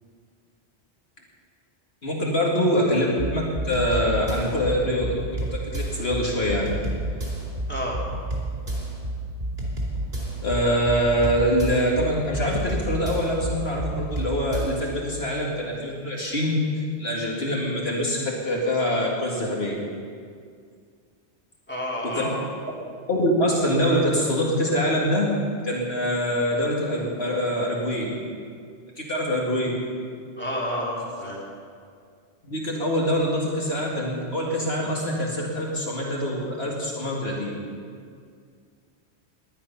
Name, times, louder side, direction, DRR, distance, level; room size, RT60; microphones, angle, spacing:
voice 1, 2.0-6.7 10.4-16.6 17.0-19.8 22.0-22.3 23.1-25.3 25.6-28.1 29.0-29.8 32.4-37.5, equal, 65° left, -3 dB, 2.3 m, -24 dB
sound 1, 3.2-14.9, right 1 dB, 50° right, 3.7 m, -30 dB
voice 2, 21.7-22.5 30.4-31.4, left 1 dB, 10° left, -5 dB, 3.2 m, -29 dB
19.0 x 11.0 x 5.8 m, 2.2 s
omnidirectional pair, 1.1 m